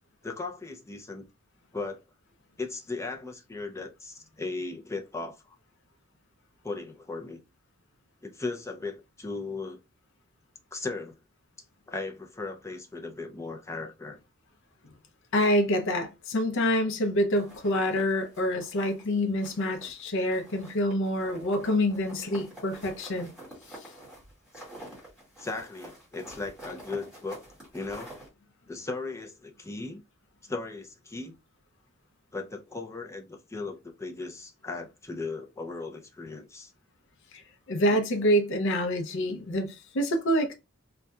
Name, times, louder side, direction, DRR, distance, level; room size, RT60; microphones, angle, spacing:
voice 1, 0.2-1.3 1.7-2.0 2.6-5.6 6.6-7.4 8.2-9.8 10.7-11.2 11.9-14.2 25.4-28.1 28.7-30.0 30.4-31.3 32.3-36.7 37.9-38.0, left 3 dB, 15° left, 0.5 m, -37 dB
voice 2, 15.3-23.3 37.7-40.5, equal, 60° left, 0.6 m, -26 dB
sound 1, 17.3-19.1 19.4-20.0 20.3-28.3, right 1 dB, 5° right, 1.8 m, -48 dB
4.0 x 2.3 x 2.3 m
head